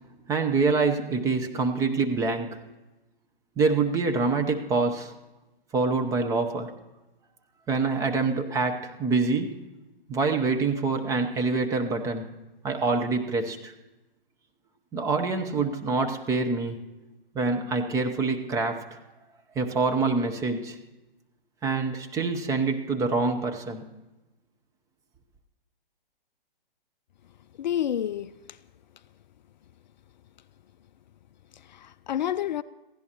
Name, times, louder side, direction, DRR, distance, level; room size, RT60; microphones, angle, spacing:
voice 1, 0.3-2.6 3.6-5.1 5.7-6.7 7.7-9.6 10.1-12.3 12.6-13.7 14.9-16.8 17.3-19.0 19.6-20.8 21.6-23.8, right 4 dB, 10° right, 0.7 m, -26 dB
voice 2, 27.6-28.6 31.5-32.6, left 10 dB, 50° left, 0.4 m, -29 dB
28.0 x 15.5 x 2.9 m
hypercardioid pair, 140°, 29 cm